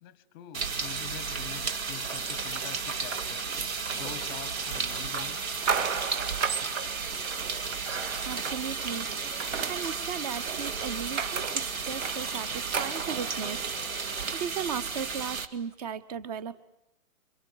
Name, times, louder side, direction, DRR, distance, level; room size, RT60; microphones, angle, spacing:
voice 1, 0.0-3.5 3.9-5.5, left 10 dB, 15° left, 18 dB, 1.0 m, -45 dB
sound 1, 0.5-15.5, right 5 dB, 75° right, 2.5 m, -33 dB
sound 2, 2.0-14.3, right 5 dB, 55° right, 2.5 m, -36 dB
voice 2, 8.3-9.1 9.7-13.7 14.3-16.6, right 7 dB, 30° right, 16 dB, 1.1 m, -36 dB
29.0 x 25.0 x 8.0 m, 0.82 s
hypercardioid pair, 160°, 42 cm